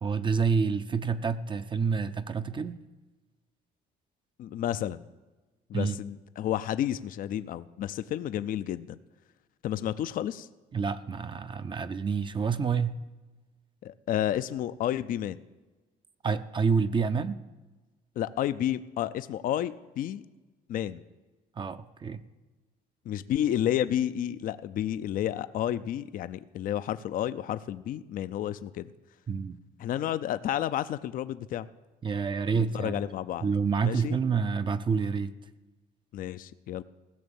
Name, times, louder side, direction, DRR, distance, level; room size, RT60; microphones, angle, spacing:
voice 1, 0.0-2.8 5.7-6.0 10.7-13.0 16.2-17.4 21.6-22.2 29.3-29.6 32.0-32.9 33.4-35.3, right 5 dB, 30° right, 10 dB, 0.5 m, -28 dB
voice 2, 4.4-5.0 5.7-9.0 9.6-10.5 13.8-15.4 18.2-20.2 20.7-21.0 23.1-28.9 29.8-31.7 32.5-33.5 33.8-34.2 36.1-36.8, left 11 dB, 55° left, 14 dB, 0.5 m, -31 dB
16.0 x 6.5 x 7.1 m, 1.2 s
cardioid pair, 110°, 17 cm